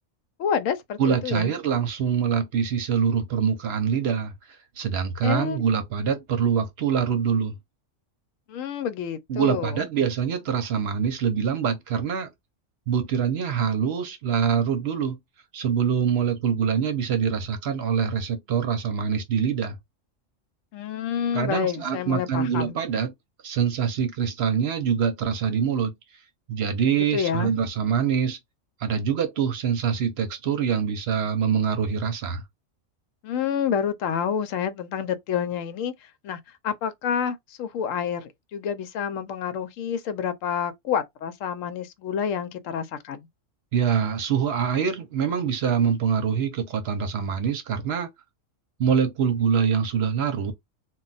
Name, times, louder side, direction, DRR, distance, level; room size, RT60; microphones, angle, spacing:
voice 1, 0.4-1.5 5.2-5.6 8.5-9.9 20.7-22.8 27.1-27.5 33.2-43.3, left 7 dB, 80° left, 0.9 m, -28 dB
voice 2, 1.0-4.3 4.8-7.6 9.3-12.3 12.9-15.2 15.5-19.8 21.3-23.1 23.4-25.9 26.5-28.4 28.8-32.4 43.7-48.1 48.8-50.5, right 7 dB, 60° right, 0.8 m, -24 dB
2.3 x 2.2 x 3.8 m
omnidirectional pair, 1.3 m